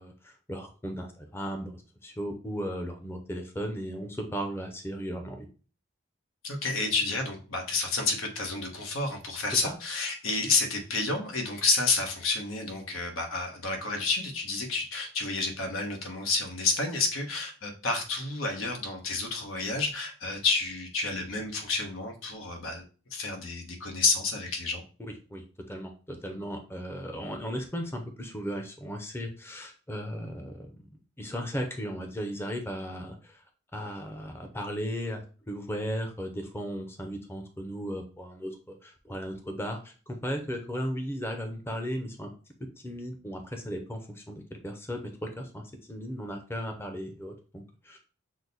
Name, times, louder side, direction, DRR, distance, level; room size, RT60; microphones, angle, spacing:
voice 1, 0.0-5.5 9.5-9.7 25.0-30.9 31.2-33.4 33.7-42.3 42.8-45.6 45.9-48.0, equal, 10° left, 4 dB, 0.6 m, -36 dB
voice 2, 6.4-22.8 23.1-24.8, left 3 dB, 90° left, 3 dB, 1.1 m, -30 dB
6.2 x 2.1 x 4.0 m, 0.36 s
head